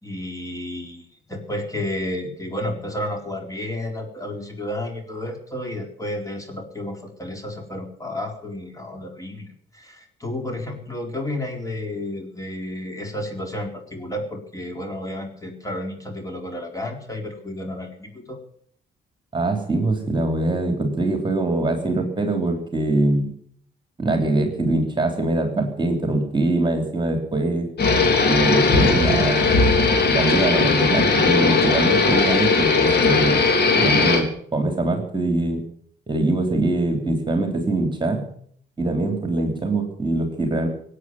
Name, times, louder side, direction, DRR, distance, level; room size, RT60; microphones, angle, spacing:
voice 1, 0.0-18.4, left 1 dB, 15° left, 2 dB, 4.2 m, -31 dB
voice 2, 19.3-23.3 24.0-27.7 28.2-29.5 30.1-33.4 33.7-35.6 36.1-38.2 38.8-40.7, right 2 dB, 25° right, 4 dB, 3.2 m, -23 dB
sound 1, 27.8-34.2, left 4 dB, 55° left, 3.4 m, -18 dB
17.5 x 8.6 x 9.2 m, 0.63 s
cardioid pair, 90°, 20 cm